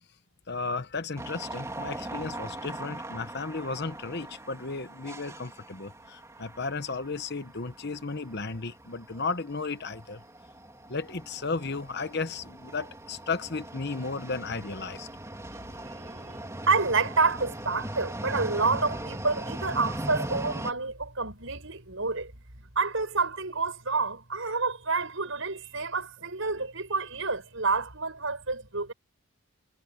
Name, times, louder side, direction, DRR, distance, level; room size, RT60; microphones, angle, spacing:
voice 1, 0.5-10.2 10.9-15.1, left 4 dB, 50° left, 1.1 m, -34 dB
sound 1, 1.2-20.7, right 1 dB, 15° right, 3.6 m, -40 dB
voice 2, 15.5-22.3 22.7-28.9, right 4 dB, 65° right, 6.3 m, -29 dB
head